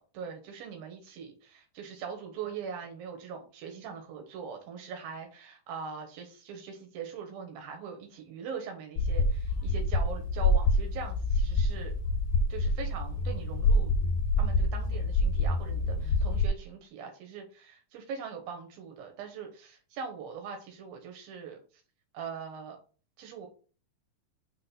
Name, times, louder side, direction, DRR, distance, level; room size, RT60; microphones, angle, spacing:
voice 1, 0.0-12.0 12.5-13.9 14.4-21.6 22.1-22.8 23.2-23.5, right 6 dB, 85° right, 3 dB, 3.0 m, -41 dB
sound 1, 9.0-16.5, left 2 dB, 75° left, 2.3 m, -27 dB
7.8 x 3.4 x 5.7 m, 0.38 s
omnidirectional pair, 4.0 m